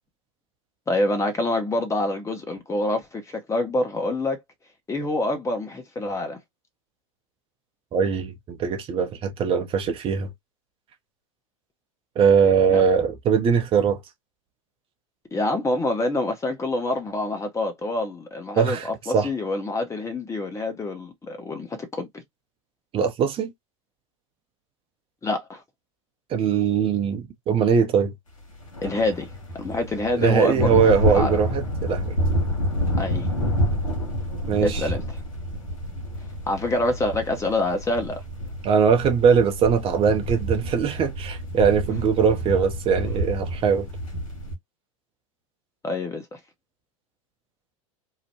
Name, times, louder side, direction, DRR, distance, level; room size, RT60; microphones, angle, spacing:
voice 1, 0.9-4.4 4.9-6.4 12.7-12.8 15.3-18.8 19.1-22.2 25.2-25.6 28.8-29.3 29.6-31.4 33.0-33.3 34.6-35.0 36.5-38.2 45.8-46.4, left 2 dB, 15° left, 0.8 m, -26 dB
voice 2, 7.9-10.3 12.2-14.0 18.5-18.9 19.1-19.3 22.9-23.5 26.3-28.1 30.2-32.2 34.5-34.9 38.6-43.9, right 6 dB, 35° right, 0.7 m, -21 dB
sound 1, 28.5-44.6, equal, 90° left, 1.1 m, -28 dB
2.8 x 2.1 x 2.8 m
hypercardioid pair, 90°, 17 cm